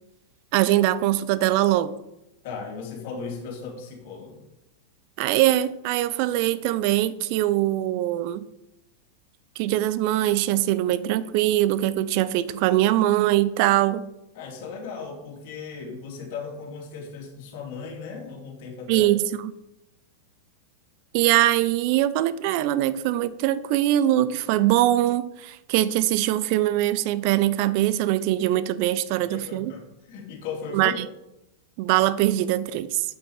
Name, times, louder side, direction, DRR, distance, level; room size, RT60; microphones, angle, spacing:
voice 1, 0.5-1.9 5.2-8.4 9.6-14.1 18.9-19.5 21.1-29.7 30.7-31.1 31.8-33.0, right 14 dB, 55° right, 16 dB, 0.6 m, -22 dB
voice 2, 2.4-4.4 14.3-19.1 29.3-31.0, left 5 dB, 60° left, 0 dB, 3.0 m, -37 dB
8.2 x 7.6 x 4.9 m, 0.89 s
hypercardioid pair, 105°, 0 cm